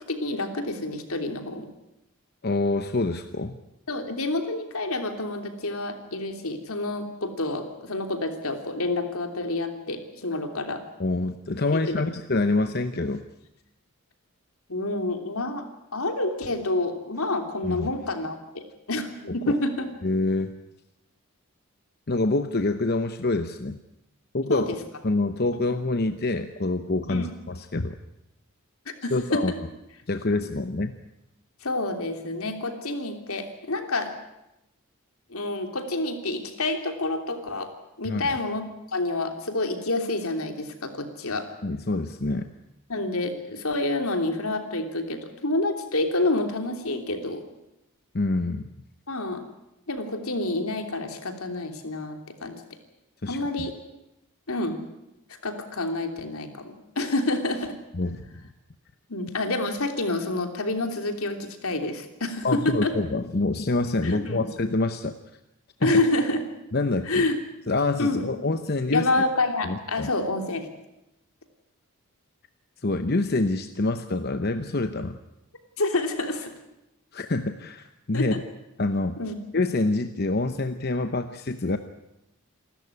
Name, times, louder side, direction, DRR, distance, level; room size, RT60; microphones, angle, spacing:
voice 1, 0.1-1.7 3.9-10.8 11.7-12.0 14.7-15.6 15.9-19.9 24.5-24.8 27.1-27.3 29.0-29.5 31.6-34.1 35.3-37.7 38.0-38.6 38.9-41.5 42.9-47.4 49.1-49.4 49.9-52.6 53.3-53.7 54.5-54.8 55.4-57.8 59.1-62.9 64.0-64.4 65.8-66.4 67.0-67.4 68.0-68.2 68.9-70.7 75.8-76.5 78.1-78.4 79.2-79.3, left 2 dB, 75° left, 5 dB, 3.1 m, -28 dB
voice 2, 2.4-3.6 11.0-13.2 17.6-17.9 19.3-19.5 20.0-20.5 22.1-23.8 24.3-24.7 25.0-27.9 29.1-29.5 30.1-31.0 38.1-38.2 41.6-42.5 48.1-48.7 53.2-53.7 57.9-58.2 62.4-65.2 65.8-65.9 66.7-67.2 67.7-69.1 69.6-70.1 72.8-75.2 77.1-78.3 78.8-79.2 79.5-81.8, left 2 dB, 45° left, 9 dB, 0.9 m, -26 dB
28.0 x 13.5 x 9.8 m, 0.90 s
head